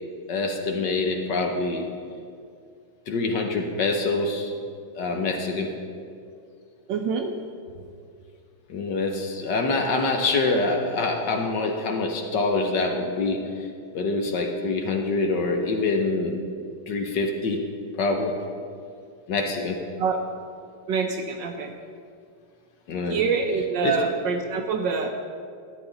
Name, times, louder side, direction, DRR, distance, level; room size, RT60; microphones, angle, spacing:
voice 1, 0.3-1.8 3.1-4.5 4.9-5.7 8.7-13.5 13.9-16.4 16.9-17.6 18.0-18.4 19.3-19.8 22.9-23.2 23.8-23.9, left 3 dB, 60° left, 3 dB, 1.3 m, -25 dB
voice 2, 6.9-7.3 20.0-20.2 20.9-21.7 23.1-25.1, right 5 dB, 70° right, 5 dB, 1.2 m, -25 dB
13.0 x 9.5 x 3.9 m, 2.3 s
omnidirectional pair, 2.4 m